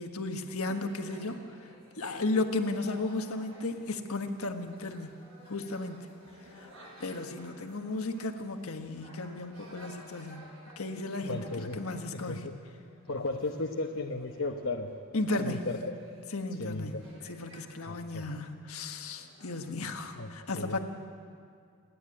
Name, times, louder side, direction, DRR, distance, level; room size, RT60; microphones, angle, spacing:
voice 1, 0.0-1.4 2.0-5.2 5.5-6.0 6.6-6.7 7.0-10.5 10.8-12.5 15.1-15.6 16.3-16.9 17.3-20.8, left 2 dB, 80° left, 5 dB, 1.4 m, -34 dB
sound 1, 0.6-19.9, equal, 70° right, 7.4 m, -55 dB
voice 2, 11.2-11.8 12.1-12.5 13.1-14.9 15.4-15.9 16.6-17.2 17.9-18.3 20.1-20.8, left 2 dB, 65° left, 1 dB, 1.0 m, -35 dB
29.0 x 9.8 x 9.9 m, 2.2 s
head